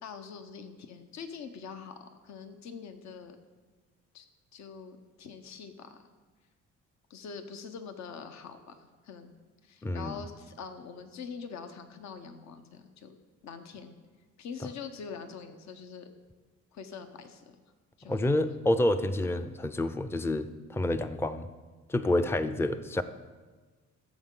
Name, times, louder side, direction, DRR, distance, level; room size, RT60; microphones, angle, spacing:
voice 1, 0.0-3.4 4.1-4.2 4.5-6.0 7.1-9.3 9.6-13.1 13.4-13.9 14.4-16.1 16.7-17.5 18.0-18.3 19.1-19.5, left 6 dB, 65° left, 8 dB, 1.0 m, -44 dB
voice 2, 9.8-10.2 18.0-21.5 21.9-23.0, left 1 dB, 10° left, 10 dB, 0.5 m, -28 dB
16.5 x 7.4 x 3.8 m, 1.3 s
cardioid pair, 90°, 30 cm